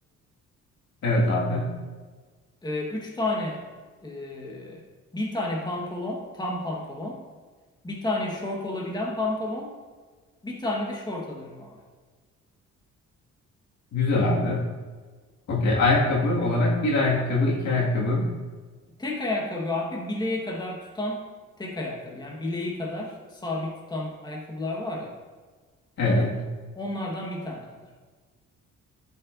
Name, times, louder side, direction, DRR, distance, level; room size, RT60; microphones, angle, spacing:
voice 1, 1.0-1.8 13.9-14.7 15.5-18.3 26.0-26.3, left 2 dB, 65° left, -3 dB, 2.0 m, -23 dB
voice 2, 2.6-3.7 4.0-4.8 5.1-7.3 7.8-9.7 10.4-11.8 19.0-21.3 21.6-25.2 26.7-27.9, left 2 dB, 15° left, -2 dB, 1.4 m, -31 dB
11.5 x 5.5 x 2.6 m, 1.4 s
cardioid pair, 90°, 30 cm